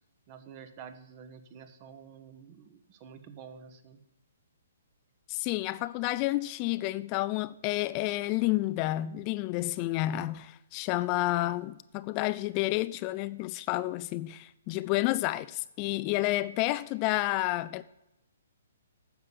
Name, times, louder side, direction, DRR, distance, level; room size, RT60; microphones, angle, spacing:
voice 1, 0.3-4.0, right 7 dB, 35° right, 1.1 m, -49 dB
voice 2, 5.3-17.8, left 17 dB, 30° left, 0.3 m, -30 dB
9.5 x 6.7 x 6.8 m
figure-of-eight pair, 130°, 0 cm